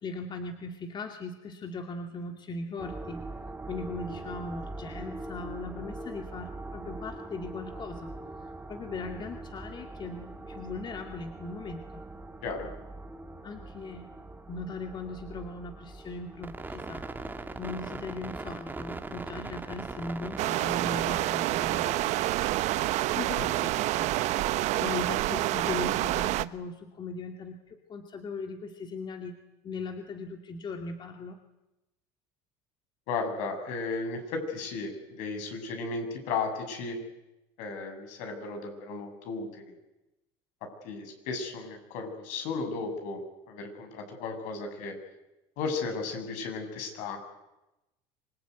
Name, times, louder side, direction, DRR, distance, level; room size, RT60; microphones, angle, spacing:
voice 1, 0.0-3.3 3.7-8.1 8.7-12.0 13.4-14.1 14.5-17.0 17.6-22.1 23.1-24.1 24.8-29.3 29.6-31.4, left 3 dB, 35° left, 5 dB, 2.4 m, -39 dB
sound 1, 2.8-20.9, right 2 dB, 15° right, 2.2 m, -41 dB
sound 2, 20.4-26.5, right 16 dB, 60° right, 0.9 m, -28 dB
voice 2, 33.1-37.0 37.6-39.7 40.8-43.2 43.5-44.9 45.6-47.2, left 4 dB, 70° left, 5 dB, 6.8 m, -35 dB
26.0 x 20.5 x 9.4 m, 0.98 s
supercardioid pair, 105°, 13 cm